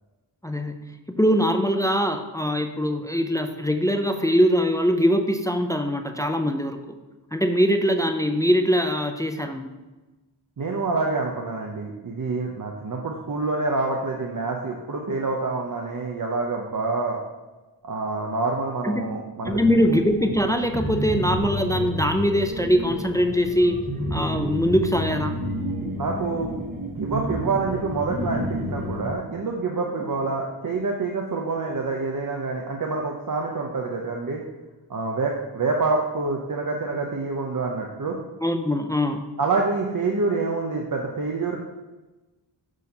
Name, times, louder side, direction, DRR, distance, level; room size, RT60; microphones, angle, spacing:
voice 1, 0.4-0.8 1.1-7.0 7.3-9.7 18.8-19.0 19.5-23.8 24.1-25.4 38.4-39.2, equal, 10° left, 6 dB, 0.3 m, -22 dB
voice 2, 10.6-17.2 17.8-19.6 26.0-26.5 26.9-34.4 34.9-38.2 39.4-41.6, right 3 dB, 45° right, 0 dB, 0.7 m, -27 dB
sound 1, 19.4-29.1, equal, 20° right, 0.9 m, -30 dB
6.4 x 2.8 x 5.3 m, 1.1 s
wide cardioid pair, 60°, 44 cm